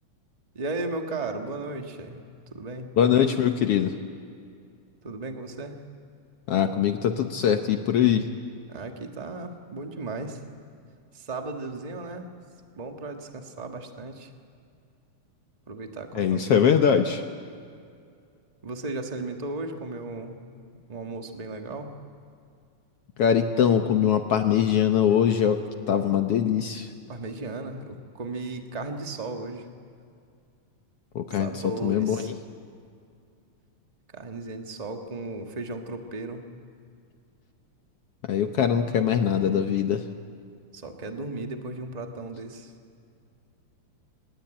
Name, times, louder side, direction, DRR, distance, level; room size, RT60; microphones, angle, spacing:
voice 1, 0.5-2.2 2.5-2.9 5.0-5.8 8.7-10.4 11.1-12.3 12.7-14.3 15.7-16.8 18.6-20.4 20.9-21.9 27.1-29.7 31.3-32.3 34.1-36.4 40.7-42.7, right 2 dB, 40° right, 4 dB, 0.5 m, -35 dB
voice 2, 3.0-4.0 6.5-8.3 16.1-17.2 23.2-25.6 25.9-26.9 31.1-32.3 38.3-40.0, left 8 dB, 65° left, 7 dB, 1.5 m, -22 dB
25.5 x 20.5 x 9.0 m, 2.4 s
omnidirectional pair, 3.6 m